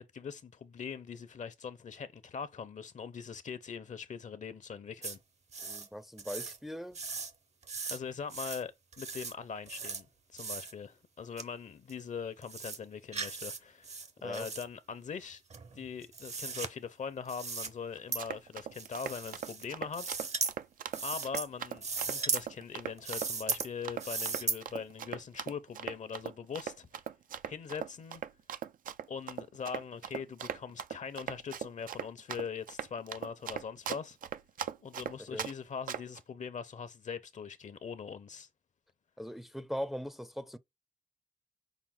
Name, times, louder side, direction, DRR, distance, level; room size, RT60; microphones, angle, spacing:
voice 1, 0.0-5.2 7.9-10.1 10.3-15.4 15.7-20.1 21.0-26.9 27.4-28.2 29.1-34.2 34.8-38.5, left 6 dB, 60° left, 0.7 m, -41 dB
sound 1, 5.0-5.2 5.5-5.9 6.2-6.6 7.0-7.3 7.6-8.0 8.3-8.6 8.9-9.3 9.7-10.0 10.4-10.7 11.4-11.5 11.9-12.0 12.4-12.8 13.1-13.6 13.8-14.6 15.5-16.7 17.3-17.7 18.1-18.2 18.7-19.6 19.9-20.5 20.9-21.5 21.8-22.4 23.0-23.7 24.0-24.6, right 4 dB, 50° right, 0.8 m, -37 dB
voice 2, 5.6-7.0 14.2-14.5 35.3-35.5 39.2-40.6, equal, ahead, 0.5 m, -40 dB
Run, 18.0-35.5 35.9-36.2, right 9 dB, 80° right, 0.4 m, -39 dB
5.9 x 2.0 x 3.7 m
cardioid pair, 60°, 14 cm